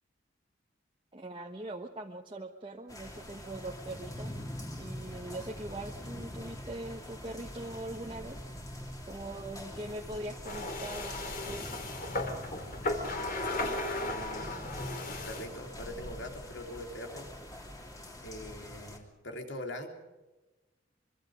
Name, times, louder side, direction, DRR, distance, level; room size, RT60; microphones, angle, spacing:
voice 1, 1.1-4.3 4.8-8.4 9.1-11.8, right 1 dB, 25° right, 0 dB, 1.2 m, -42 dB
sound 1, 2.9-19.0, left 1 dB, 20° left, 3.0 m, -44 dB
sound 2, 10.4-15.5, left 2 dB, 50° left, 3.6 m, -35 dB
voice 2, 13.5-14.6 15.3-17.3 18.2-19.9, left 1 dB, 75° left, 4 dB, 3.5 m, -43 dB
25.0 x 24.0 x 5.1 m, 1.1 s
head